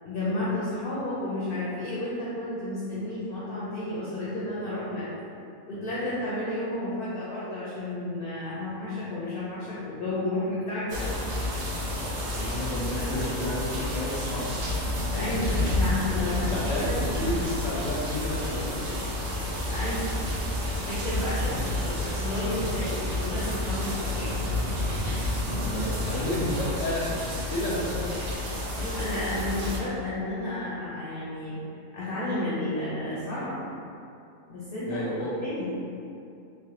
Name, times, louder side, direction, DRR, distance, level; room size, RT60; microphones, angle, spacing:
voice 1, 0.0-5.1 5.7-11.0 15.2-15.5 15.7-17.3 19.7-20.1 20.8-24.3 25.5-25.6 26.1-26.2 28.8-31.6 31.9-33.6 34.5-35.0 35.4-35.7, left 1 dB, 60° left, -8 dB, 0.6 m, -32 dB
sound 1, 10.9-29.8, left 1 dB, 75° right, 1.0 m, -30 dB
voice 2, 11.8-14.5 15.4-15.6 16.2-18.9 21.9-22.2 25.5-28.1 34.8-35.3, left 1 dB, 90° left, -5 dB, 1.0 m, -32 dB
3.1 x 2.0 x 2.8 m, 2.6 s
omnidirectional pair, 1.4 m